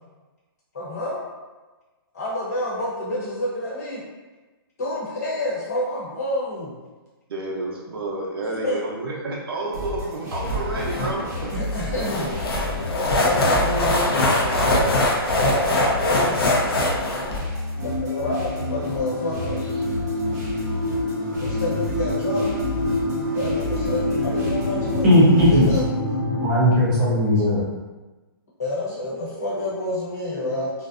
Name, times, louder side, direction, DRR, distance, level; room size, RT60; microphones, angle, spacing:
voice 1, 0.7-1.2 2.1-4.0 4.8-6.7 8.6-8.8 11.5-12.3 12.8-14.9 15.3-16.5 17.8-19.7 21.3-22.4 23.3-25.1 25.5-25.8 28.6-30.7, left 1 dB, 40° left, -7 dB, 0.9 m, -28 dB
voice 2, 7.3-11.2, right 2 dB, 70° right, -3 dB, 0.6 m, -30 dB
sound 1, 9.7-25.9, left 1 dB, 40° right, 0.8 m, -32 dB
sound 2, 10.4-17.4, left 1 dB, 70° left, 0.5 m, -23 dB
sound 3, 17.8-26.5, left 1 dB, 90° left, 1.1 m, -26 dB
voice 3, 25.0-25.7 26.4-27.6 29.5-29.9 30.2-30.5, equal, 5° right, -11 dB, 0.4 m, -18 dB
2.5 x 2.1 x 2.4 m, 1.2 s
hypercardioid pair, 175°, 13 cm